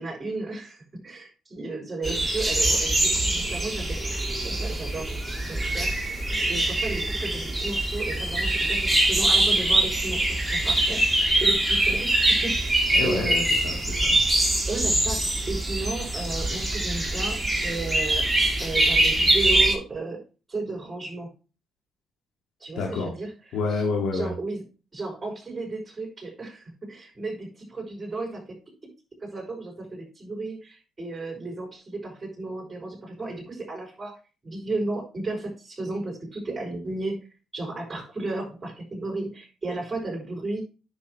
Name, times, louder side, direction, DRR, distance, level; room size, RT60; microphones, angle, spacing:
voice 1, 0.0-6.1 6.5-11.0 11.4-12.7 13.0-13.5 14.7-18.3 18.6-20.2 20.5-21.3 22.6-23.3 24.1-24.6 24.9-28.6 29.2-34.1 34.4-37.2 37.5-40.6, right 2 dB, 25° right, -2 dB, 5.5 m, -34 dB
sound 1, 2.0-19.7, right 1 dB, 5° right, 3.2 m, -24 dB
voice 2, 12.9-14.2 22.8-23.2 23.5-24.3, left 3 dB, 80° left, -1 dB, 2.0 m, -28 dB
9.8 x 6.4 x 3.2 m, 0.33 s
cardioid pair, 90°, 0 cm